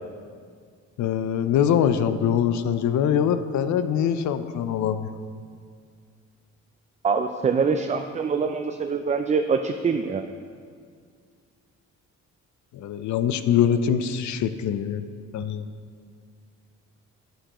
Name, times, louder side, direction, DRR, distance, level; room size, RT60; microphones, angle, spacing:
voice 1, 1.0-5.1 12.7-15.0 15.3-15.7, left 8 dB, 70° left, 11 dB, 0.6 m, -23 dB
voice 2, 7.0-10.2, right 5 dB, 25° right, 6 dB, 0.3 m, -24 dB
9.1 x 9.0 x 3.0 m, 2.1 s
cardioid pair, 90°, 30 cm